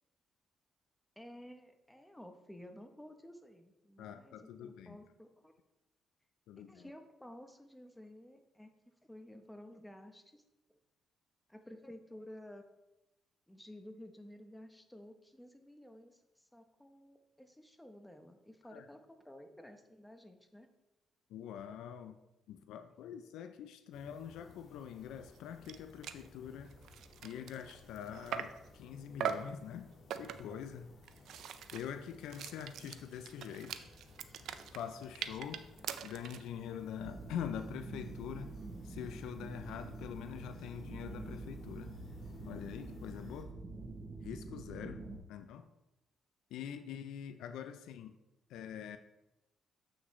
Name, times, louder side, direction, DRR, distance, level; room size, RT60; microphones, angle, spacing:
voice 1, 1.2-5.5 6.6-8.7 9.0-10.4 11.5-12.7 13.5-20.7, left 1 dB, 5° left, 6 dB, 0.9 m, -53 dB
voice 2, 4.0-5.0 6.5-6.9 18.7-18.9 21.3-22.2 22.5-26.7 27.2-30.9 31.7-33.9 34.7-35.7 36.0-38.5 38.8-41.9 42.4-43.6 44.2-45.0 45.3-45.7 46.5-48.2 48.5-49.0, left 9 dB, 85° left, 8 dB, 0.4 m, -44 dB
sound 1, 23.9-43.4, left 2 dB, 65° left, 1.8 m, -59 dB
sound 2, 25.4-25.5 25.6-25.8 26.0-26.3 26.7-28.7 29.2-29.6 30.1-30.6 31.0-36.5, right 8 dB, 75° right, 0.4 m, -42 dB
sound 3, 37.0-45.2, right 3 dB, 45° right, 0.9 m, -46 dB
7.7 x 6.2 x 3.2 m, 0.95 s
cardioid pair, 90°, 0 cm